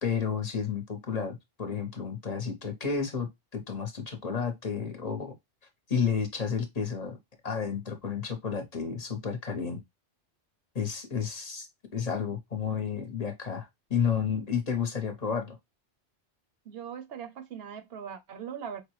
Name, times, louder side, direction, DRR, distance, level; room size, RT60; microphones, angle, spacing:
voice 1, 0.0-5.3 5.9-7.2 7.4-9.8 10.7-11.7 11.9-15.6, left 6 dB, 40° left, 0.8 m, -31 dB
voice 2, 16.7-18.8, right 8 dB, 65° right, 0.8 m, -40 dB
4.8 x 2.1 x 3.0 m
omnidirectional pair, 1.2 m